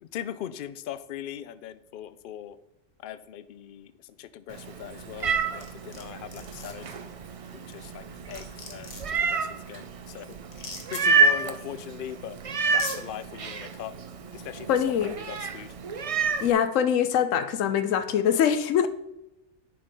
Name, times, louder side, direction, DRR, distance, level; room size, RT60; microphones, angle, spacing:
voice 1, 0.0-2.6 3.0-6.9 7.5-10.4 10.9-12.4 12.7-13.9 14.3-15.7, left 11 dB, 60° left, 14 dB, 0.6 m, -40 dB
Meow, 4.5-16.5, right 4 dB, 55° right, 0.3 m, -29 dB
sound 1, 5.6-6.0 6.3-6.7 7.9-8.0 8.3-9.2 10.5-11.0 12.1-12.2 12.6-13.0, left 3 dB, 40° left, 1.1 m, -39 dB
voice 2, 14.7-15.1 16.4-18.9, left 8 dB, 90° left, 11 dB, 1.0 m, -23 dB
10.0 x 5.2 x 4.1 m, 0.89 s
omnidirectional pair, 1.3 m